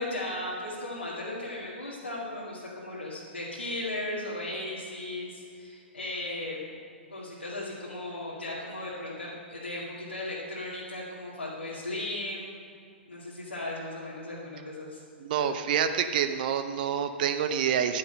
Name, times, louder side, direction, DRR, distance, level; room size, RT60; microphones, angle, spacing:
voice 1, 0.0-6.6 7.1-12.5 13.1-15.0 15.3-15.5, left 1 dB, 85° left, -8 dB, 2.2 m, -36 dB
voice 2, 15.2-18.0, right 8 dB, 45° right, 9 dB, 0.6 m, -27 dB
11.0 x 9.9 x 6.7 m, 2.4 s
figure-of-eight pair, 110°, 6 cm